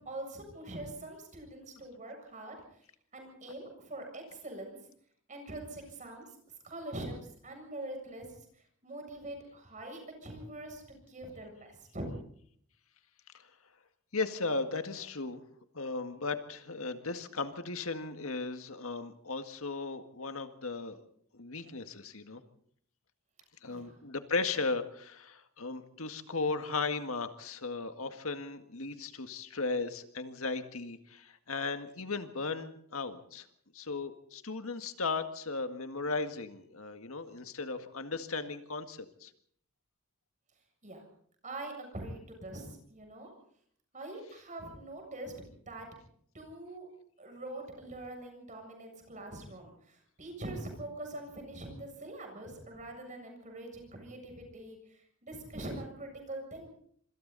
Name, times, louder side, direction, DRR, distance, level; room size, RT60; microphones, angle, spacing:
voice 1, 0.0-2.6 3.1-4.8 5.3-6.3 6.6-7.2 7.4-8.3 8.8-12.1 23.7-24.0 40.8-41.0 41.4-43.3 43.9-45.3 45.7-45.9 46.3-46.9 47.2-56.7, right 1 dB, 35° right, 3 dB, 7.4 m, -43 dB
voice 2, 14.1-15.4 15.7-21.0 21.3-22.4 23.6-33.5 33.7-39.3, left 3 dB, 75° left, 8 dB, 1.9 m, -36 dB
26.5 x 25.5 x 4.1 m, 0.63 s
head